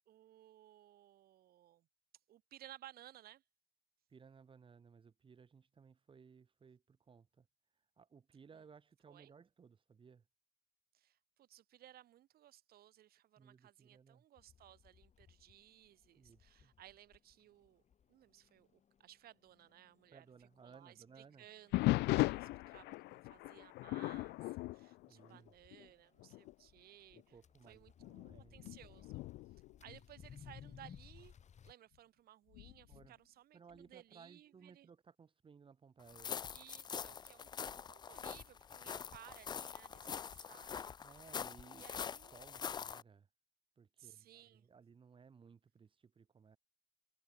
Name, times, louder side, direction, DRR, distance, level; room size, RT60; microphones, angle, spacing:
voice 1, 0.0-1.9 2.3-3.4 8.5-8.6 9.1-9.3 10.9-17.8 18.1-27.4 27.7-29.3 29.8-31.3 31.6-34.9 36.5-41.3 41.7-42.4 44.0-44.7, right 13 dB, 65° right, 2.0 m, -60 dB
voice 2, 4.1-7.5 8.0-10.2 13.4-14.2 16.1-16.7 20.1-21.5 25.1-25.5 27.1-28.6 32.9-33.2 33.5-36.4 36.9-37.2 41.0-43.3 43.8-46.6, right 6 dB, 30° right, 1.6 m, -61 dB
sound 1, 14.4-31.7, left 8 dB, 45° left, 5.2 m, -62 dB
sound 2, 21.7-25.9 26.2-26.5 27.2-27.3 28.0-30.7 32.5-33.1, left 20 dB, 80° left, 0.5 m, -38 dB
sound 3, 36.1-43.0, left 7 dB, 25° left, 0.3 m, -45 dB
cardioid pair, 110°, 17 cm